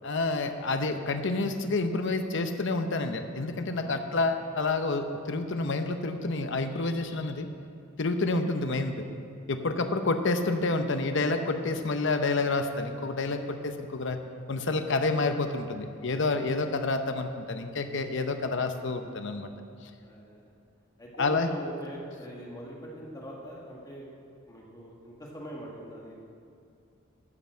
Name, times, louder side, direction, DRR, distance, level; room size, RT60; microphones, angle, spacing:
voice 1, 0.0-7.5 8.0-9.1 9.5-14.2 14.5-19.5 21.2-21.5, left 3 dB, 65° left, 7 dB, 0.8 m, -29 dB
voice 2, 3.7-4.2 18.3-18.6 20.0-20.5 21.0-24.1 24.5-26.2, equal, 20° left, -3 dB, 1.8 m, -43 dB
12.0 x 5.8 x 7.5 m, 2.4 s
head